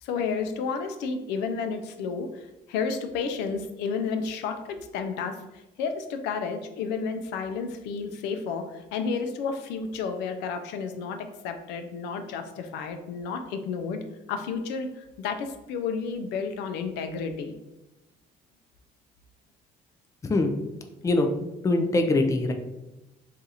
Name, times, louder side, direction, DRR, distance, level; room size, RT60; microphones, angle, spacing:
voice 1, 0.0-17.5, left 5 dB, 85° left, 7 dB, 0.4 m, -31 dB
voice 2, 21.6-22.5, left 2 dB, 20° left, 5 dB, 0.4 m, -22 dB
2.7 x 2.4 x 4.0 m, 0.98 s
cardioid pair, 110°, 17 cm